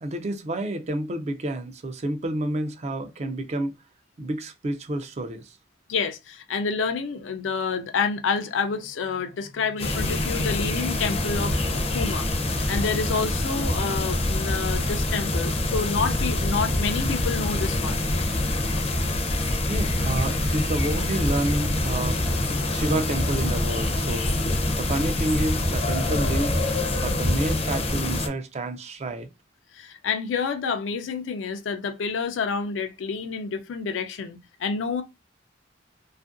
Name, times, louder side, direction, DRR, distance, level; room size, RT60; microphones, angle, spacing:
voice 1, 0.0-3.8 4.2-5.6 19.7-22.2 22.7-24.4 24.8-26.6 27.0-29.3, right 1 dB, 35° right, 0.4 m, -29 dB
voice 2, 5.9-11.6 11.9-18.0 29.7-35.0, left 5 dB, 90° left, 0.4 m, -28 dB
sound 1, 9.8-28.3, left 1 dB, 35° left, 0.5 m, -25 dB
2.6 x 2.4 x 2.4 m
head